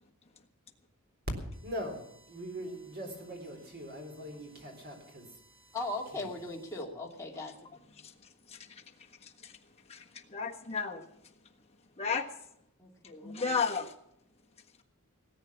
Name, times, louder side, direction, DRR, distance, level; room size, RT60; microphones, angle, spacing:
voice 1, 1.6-5.3 5.6-5.7, equal, 45° right, 4 dB, 3.9 m, -42 dB
voice 2, 5.7-7.5 12.8-13.6, left 2 dB, 15° left, -2 dB, 2.3 m, -39 dB
voice 3, 8.5-8.8 9.2-9.6 9.9-10.0 10.3-11.0 12.0-12.3 13.2-13.9, left 5 dB, 30° left, 2 dB, 1.4 m, -33 dB
18.5 x 9.2 x 7.2 m, 0.76 s
head